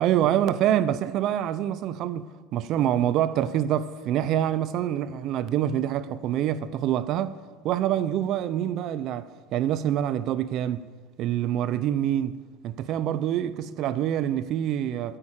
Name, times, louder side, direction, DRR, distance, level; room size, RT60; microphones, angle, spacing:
voice 1, 0.0-7.4 7.6-10.8 11.2-12.4 12.6-15.2, right 11 dB, 50° right, 0.5 m, -26 dB
9.4 x 8.7 x 8.8 m
supercardioid pair, 130°, 0 cm